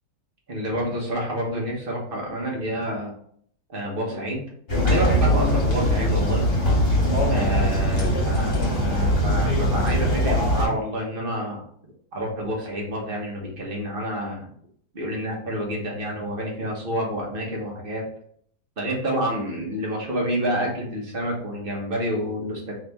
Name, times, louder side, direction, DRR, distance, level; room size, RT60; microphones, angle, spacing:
voice 1, 0.5-3.1 3.7-4.4 4.8-6.5 7.3-11.6 12.1-14.5 14.9-18.0 18.8-22.8, equal, 35° right, -1 dB, 1.2 m, -28 dB
sound 1, 4.7-10.7, equal, 40° left, 1.3 m, -21 dB
3.6 x 3.3 x 3.4 m, 0.63 s
omnidirectional pair, 1.7 m